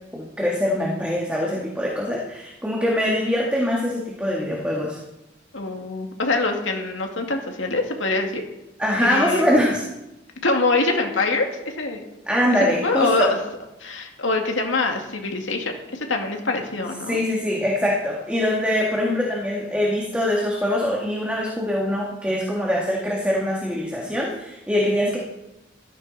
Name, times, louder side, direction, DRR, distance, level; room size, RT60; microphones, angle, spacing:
voice 1, 0.1-5.0 8.8-9.8 12.3-13.3 17.1-25.2, left 1 dB, 5° right, -3 dB, 2.0 m, -23 dB
voice 2, 5.5-8.4 9.0-9.4 10.4-11.5 11.8-12.0 12.8-13.4 13.8-17.2, left 3 dB, 80° left, 3 dB, 2.2 m, -24 dB
16.0 x 14.0 x 4.2 m, 0.95 s
head